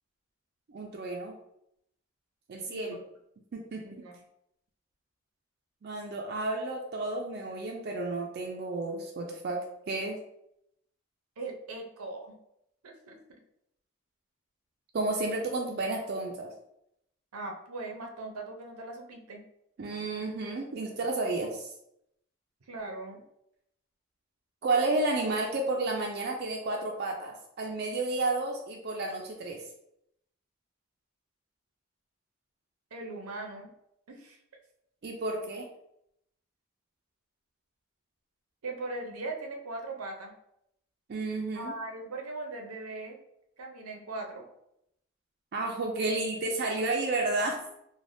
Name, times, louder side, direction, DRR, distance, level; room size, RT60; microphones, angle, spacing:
voice 1, 0.7-1.4 2.5-3.0 3.5-3.8 5.8-9.6 9.9-10.2 14.9-16.5 19.8-21.7 24.6-29.6 35.0-35.7 41.1-41.7 45.5-47.6, right 2 dB, 45° right, 1 dB, 0.3 m, -31 dB
voice 2, 2.7-3.0 3.8-4.2 11.4-12.4 12.8-13.2 17.3-19.4 22.7-23.2 32.9-33.7 34.1-34.4 38.6-40.3 41.5-43.2 43.6-44.5 46.7-46.8, right 2 dB, 90° right, 2 dB, 0.6 m, -39 dB
3.3 x 2.1 x 2.5 m, 0.78 s
head